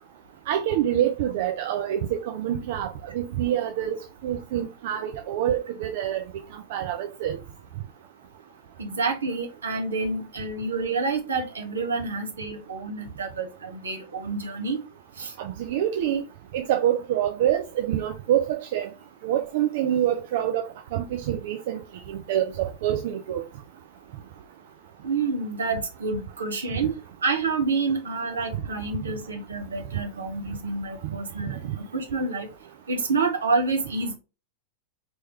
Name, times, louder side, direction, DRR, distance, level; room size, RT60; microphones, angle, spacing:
voice 1, 0.5-4.0 4.2-6.2 6.5-7.4 15.4-16.2 16.5-18.9 19.2-20.6 20.9-21.8 22.1-23.4 31.6-31.7, right 11 dB, 50° right, 0.5 m, -26 dB
voice 2, 8.8-14.8 15.2-15.3 25.0-26.9 27.2-32.5 32.9-34.1, right 4 dB, 70° right, 1.1 m, -28 dB
4.5 x 3.1 x 3.2 m
figure-of-eight pair, 90°, 0 cm